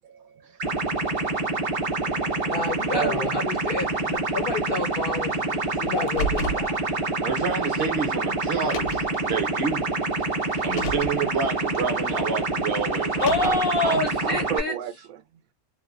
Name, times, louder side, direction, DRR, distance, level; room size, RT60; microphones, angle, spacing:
voice 1, 0.0-0.4 2.0-3.4 13.4-15.2, right 9 dB, 85° right, 1.0 m, -33 dB
sound 1, 0.6-14.6, right 2 dB, 35° right, 0.5 m, -27 dB
voice 2, 2.5-6.8 13.2-14.7, left 3 dB, 65° left, 0.5 m, -28 dB
Car, 5.9-6.7 7.8-7.9 8.6-9.2 10.5-11.2 13.0-13.7, equal, 85° left, 1.1 m, -31 dB
voice 3, 7.2-9.9 10.6-13.3, right 6 dB, 55° right, 0.9 m, -29 dB
2.8 x 2.2 x 2.3 m
omnidirectional pair, 1.4 m